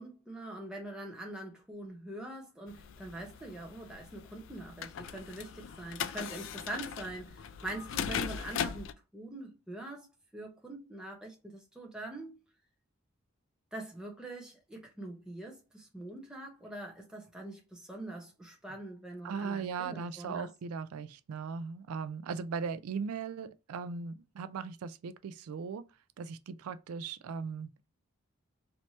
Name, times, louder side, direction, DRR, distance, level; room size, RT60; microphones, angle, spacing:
voice 1, 0.0-10.1 10.3-12.4 13.7-20.5, right 1 dB, 5° right, 0.9 m, -43 dB
sound 1, 2.7-8.9, left 8 dB, 60° left, 0.3 m, -39 dB
voice 2, 19.2-25.8 26.2-27.9, right 5 dB, 90° right, 0.4 m, -38 dB
3.2 x 2.8 x 2.9 m
head